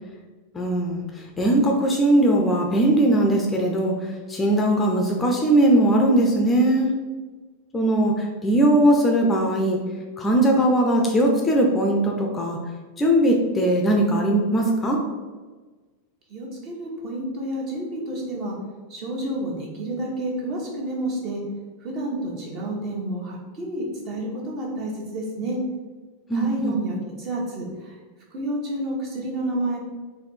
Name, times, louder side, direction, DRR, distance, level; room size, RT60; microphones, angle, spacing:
voice 1, 0.5-1.0 1.4-3.9 4.3-6.9 7.7-9.8 10.2-12.6 13.0-15.0 26.3-26.8, right 1 dB, 15° left, 1 dB, 0.5 m, -20 dB
voice 2, 16.3-18.5 18.9-21.4 21.8-25.6 26.3-27.9 28.3-29.8, right 1 dB, 40° right, -2 dB, 1.2 m, -30 dB
4.1 x 2.7 x 4.2 m, 1.3 s
figure-of-eight pair, 90°, 0 cm